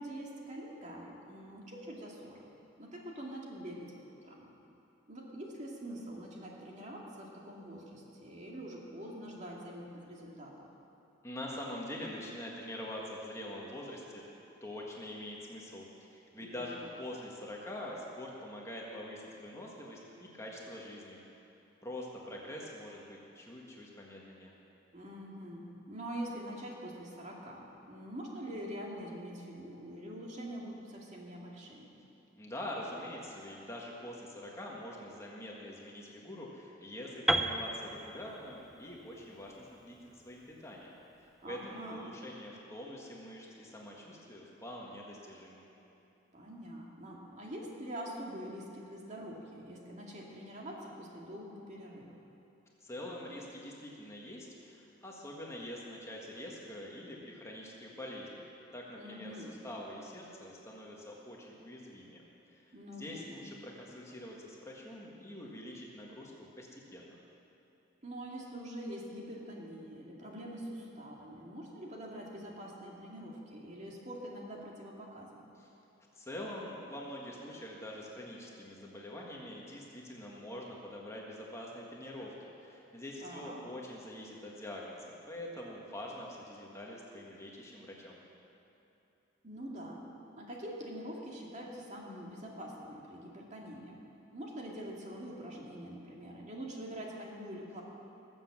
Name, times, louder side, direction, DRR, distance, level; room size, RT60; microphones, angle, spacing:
voice 1, 0.0-2.4 2.8-4.5 5.1-10.5 16.4-16.6 24.9-31.9 41.4-42.1 46.3-52.2 58.9-59.5 62.7-63.3 68.0-75.5 83.2-83.6 89.4-90.0 90.3-94.0 94.3-97.8, equal, 40° right, -2 dB, 2.2 m, -44 dB
voice 2, 11.2-14.3 14.6-21.2 21.8-24.5 32.4-45.6 52.8-58.4 58.7-62.2 62.5-67.2 75.6-75.7 76.2-88.2, left 1 dB, 15° left, -3 dB, 1.7 m, -45 dB
Piano, 37.3-41.2, right 1 dB, ahead, 0.5 m, -35 dB
19.5 x 7.8 x 7.5 m, 3.0 s
head